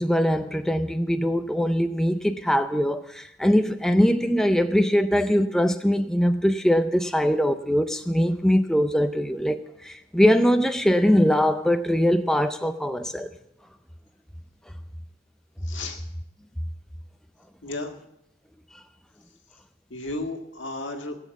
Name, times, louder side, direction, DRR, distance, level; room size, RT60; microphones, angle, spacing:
voice 1, 0.0-13.3 18.7-18.8, equal, 5° left, 0.4 m, -22 dB
voice 2, 15.6-16.0 17.6-18.0 19.9-21.2, left 2 dB, 65° left, 1.9 m, -33 dB
16.5 x 7.3 x 8.2 m
head